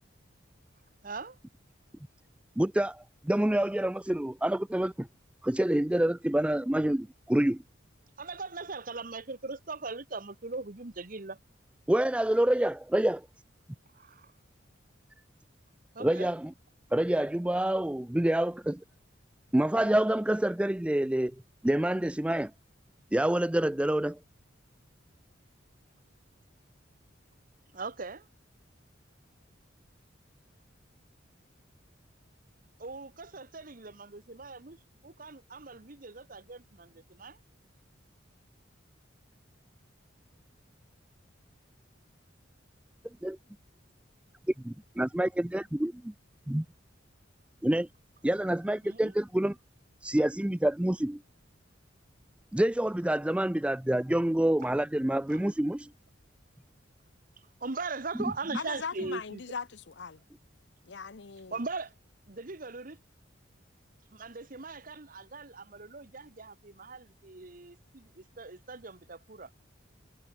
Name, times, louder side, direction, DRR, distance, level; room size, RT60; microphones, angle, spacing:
voice 1, 1.0-1.4 8.2-11.4 13.9-14.3 15.9-16.3 27.7-28.3 32.8-37.4 48.8-49.1 55.3-55.4 57.4-59.4 61.5-61.9 62.3-63.0 64.1-69.5, right 3 dB, 45° right, 1.1 m, -40 dB
voice 2, 2.6-5.1 5.4-7.6 11.9-13.3 16.0-16.5 16.9-18.8 19.5-21.4 21.6-22.5 23.1-24.2 43.2-43.4 44.6-45.9 46.5-46.6 47.6-47.9 48.2-49.5 50.0-51.2 52.5-55.9, right 1 dB, 5° right, 0.3 m, -27 dB
voice 3, 58.5-60.2 60.8-61.6, left 5 dB, 60° left, 0.8 m, -39 dB
head